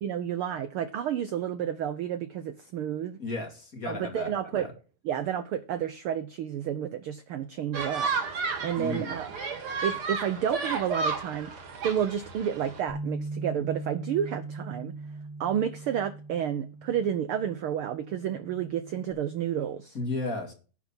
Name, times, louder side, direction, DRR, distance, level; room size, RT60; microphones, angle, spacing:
voice 1, 0.0-3.2 3.9-4.7 5.0-8.1 8.6-9.3 9.8-11.5 11.8-14.9 15.4-20.0, right 9 dB, 75° right, 1.2 m, -30 dB
voice 2, 3.2-4.7 8.7-9.2 19.9-20.5, left 2 dB, 30° left, 2.3 m, -34 dB
sound 1, 7.7-12.8, right 4 dB, 50° right, 2.9 m, -32 dB
Bass guitar, 12.9-19.1, right 3 dB, 50° left, 4.6 m, -40 dB
10.5 x 6.1 x 7.2 m
omnidirectional pair, 3.4 m